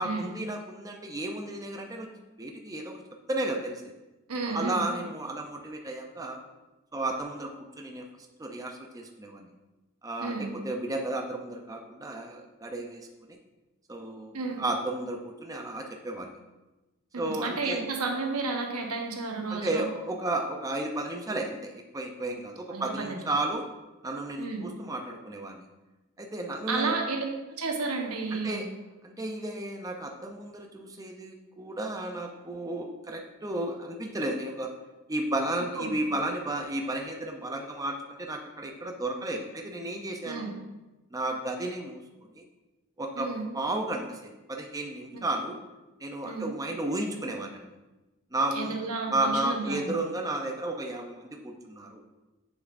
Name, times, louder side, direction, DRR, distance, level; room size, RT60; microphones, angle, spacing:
voice 1, 0.0-2.1 2.4-3.0 3.3-3.8 4.5-6.4 6.9-8.0 8.4-9.5 10.0-13.1 13.9-16.3 17.2-17.8 19.5-23.6 24.0-25.6 26.2-26.9 28.3-28.7 29.0-34.7 35.1-40.5 41.1-42.0 42.3-42.4 43.0-43.3 43.5-45.6 46.0-47.7 48.3-48.8 49.1-52.0, right 2 dB, 15° right, 2 dB, 0.5 m, -33 dB
voice 2, 4.3-4.8 10.2-10.5 14.3-14.6 17.2-19.9 22.7-23.2 24.4-24.6 26.7-28.6 35.8-35.9 40.2-40.5 43.2-43.5 45.1-45.2 46.2-46.5 48.5-50.0, right 3 dB, 85° right, 2 dB, 1.0 m, -32 dB
7.0 x 6.6 x 2.5 m, 1.1 s
head